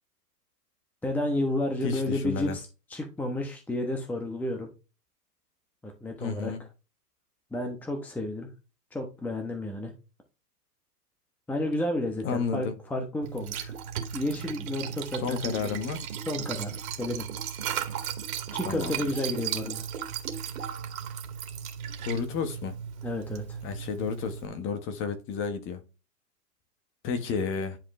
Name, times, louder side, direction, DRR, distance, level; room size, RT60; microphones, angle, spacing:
voice 1, 1.0-4.7 5.8-6.5 7.5-8.5 8.9-9.9 11.5-13.7 14.1-15.8 16.3-17.3 18.5-19.8 23.0-23.6, left 1 dB, 5° left, 1.0 m, -31 dB
voice 2, 1.8-2.6 6.2-6.6 12.2-12.7 15.2-16.0 18.6-19.0 22.0-22.8 23.6-25.8 27.0-27.8, left 5 dB, 25° left, 1.3 m, -31 dB
Liquid, 13.2-24.5, right 8 dB, 55° right, 2.3 m, -36 dB
10.5 x 4.9 x 3.2 m
hypercardioid pair, 130°, 48 cm